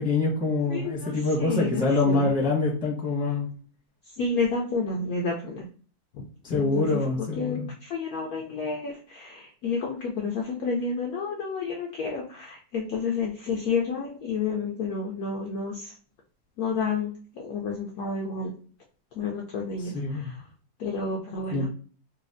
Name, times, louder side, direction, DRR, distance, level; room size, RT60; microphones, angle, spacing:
voice 1, 0.0-3.5 6.5-7.7 19.9-20.3 21.5-21.6, left 3 dB, 5° right, -5 dB, 0.6 m, -25 dB
voice 2, 0.7-2.3 4.2-5.7 6.1-15.9 16.6-18.5 19.1-20.4 20.8-21.7, left 4 dB, 75° left, 0 dB, 0.8 m, -30 dB
4.1 x 2.3 x 2.5 m, 0.43 s
omnidirectional pair, 2.0 m